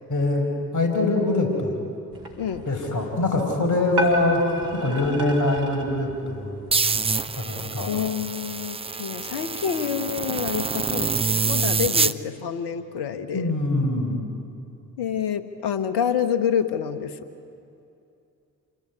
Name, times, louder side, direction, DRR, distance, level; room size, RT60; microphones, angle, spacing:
voice 1, 0.1-0.5 0.7-1.8 2.7-4.4 4.8-6.6 7.3-7.9 13.3-14.2, left 2 dB, 40° left, 3 dB, 5.2 m, -23 dB
sound 1, 2.1-7.3, equal, 60° right, 4.6 m, -34 dB
sound 2, 6.7-12.1, right 4 dB, 15° right, 0.6 m, -26 dB
voice 2, 7.9-13.5 15.0-17.2, left 8 dB, 60° left, 9 dB, 1.6 m, -27 dB
27.0 x 18.0 x 9.8 m, 2.6 s
figure-of-eight pair, 40°, 45 cm